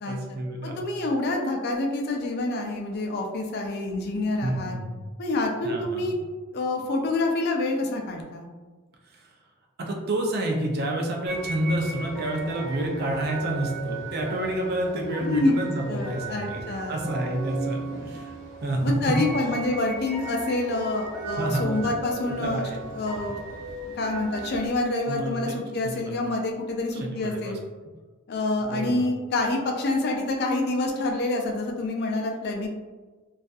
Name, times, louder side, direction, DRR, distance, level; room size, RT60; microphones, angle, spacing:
voice 1, 0.1-0.8 4.4-5.0 5.6-6.0 9.1-9.3 9.8-16.6 16.9-19.1 21.4-21.8 22.3-23.3 25.1-25.6 25.8-26.1 26.9-27.5 28.6-29.0, right 1 dB, 50° right, 1 dB, 0.4 m, -29 dB
voice 2, 0.6-4.8 5.2-6.2 6.5-8.4 15.2-15.5 15.9-17.1 18.8-23.4 23.8-27.6 28.3-32.7, left 2 dB, 50° left, 2 dB, 0.4 m, -27 dB
sound 1, 11.3-24.7, right 3 dB, 90° right, 0.8 m, -37 dB
2.5 x 2.3 x 2.3 m, 1.3 s
head